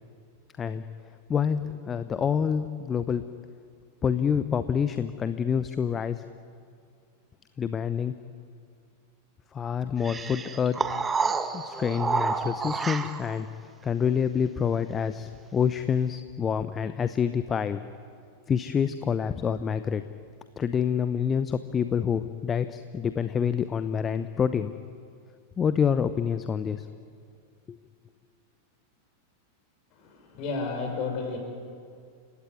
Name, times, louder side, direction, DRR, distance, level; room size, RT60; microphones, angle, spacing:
voice 1, 1.3-3.3 4.0-6.2 7.6-8.1 9.5-10.8 11.4-17.8 18.5-20.0 20.6-24.7 25.6-26.9 27.7-27.8, left 7 dB, 20° left, 12 dB, 0.8 m, -27 dB
sound 1, 10.0-13.4, right 5 dB, 15° right, 1.4 m, -29 dB
voice 2, 29.9-31.4, left 4 dB, 40° left, 4 dB, 6.2 m, -32 dB
30.0 x 17.0 x 9.6 m, 2.2 s
figure-of-eight pair, 90°, 0 cm